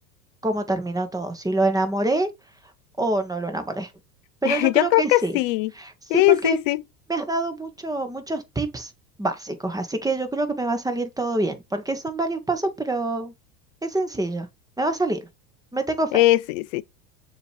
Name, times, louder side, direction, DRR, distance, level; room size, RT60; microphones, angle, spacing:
voice 1, 0.4-2.3 3.0-3.9 4.4-5.4 5.8-6.6 7.1-8.9 9.2-13.3 13.8-14.5 14.8-15.2 15.7-16.2, right 2 dB, 5° right, 1.2 m, -26 dB
voice 2, 4.4-5.7 6.1-6.8 16.1-16.8, left 18 dB, 50° left, 0.6 m, -20 dB
6.7 x 3.0 x 4.6 m
hypercardioid pair, 85°, 48 cm